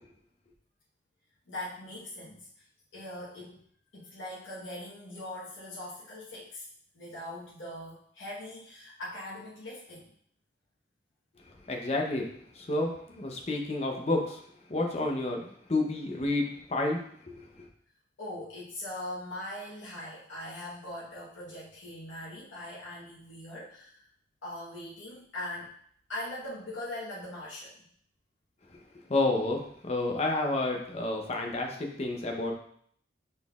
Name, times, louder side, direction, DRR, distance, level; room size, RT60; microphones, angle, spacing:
voice 1, 1.5-2.7 2.9-3.6 3.9-6.7 6.9-10.1 18.2-24.0 24.4-25.7 26.1-27.8, left 1 dB, 80° left, -7 dB, 1.1 m, -41 dB
voice 2, 11.7-14.4 14.7-17.4 29.1-32.5, left 2 dB, 35° left, 2 dB, 0.6 m, -30 dB
5.4 x 4.1 x 2.3 m, 0.63 s
head